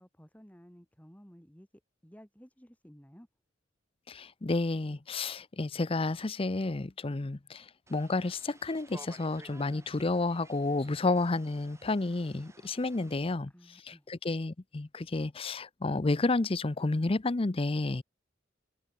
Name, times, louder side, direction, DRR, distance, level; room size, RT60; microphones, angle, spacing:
voice 1, 0.0-1.7 2.0-3.3 13.5-14.1, equal, 10° left, 4.6 m, -55 dB
voice 2, 4.1-18.0, left 2 dB, 30° left, 0.6 m, -31 dB
sound 1, 7.9-13.2, right 2 dB, 15° right, 4.0 m, -55 dB
open air
head